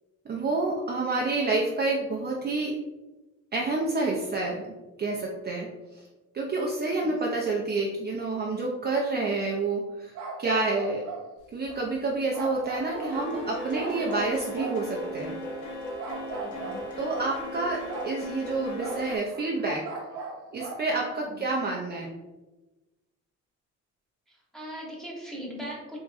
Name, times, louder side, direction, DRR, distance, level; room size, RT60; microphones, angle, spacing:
voice 1, 0.3-2.8 3.5-4.7 5.0-5.7 6.3-10.1 10.4-11.0 11.5-15.4 17.0-19.9 20.5-22.1, right 3 dB, 35° right, -2 dB, 0.5 m, -28 dB
sound 1, 10.1-11.3 11.7-11.9 12.3-13.2 13.7-15.3 16.0-17.3 17.9-18.2 18.8-21.2, right 4 dB, 80° right, 0.7 m, -39 dB
sound 2, 11.6-12.0 12.3-19.2, left 1 dB, 70° left, 0.9 m, -37 dB
voice 2, 16.3-16.8 21.1-21.5 24.3-26.0, equal, ahead, -4 dB, 1.1 m, -41 dB
3.6 x 2.9 x 2.4 m, 1.1 s
cardioid pair, 90°, 30 cm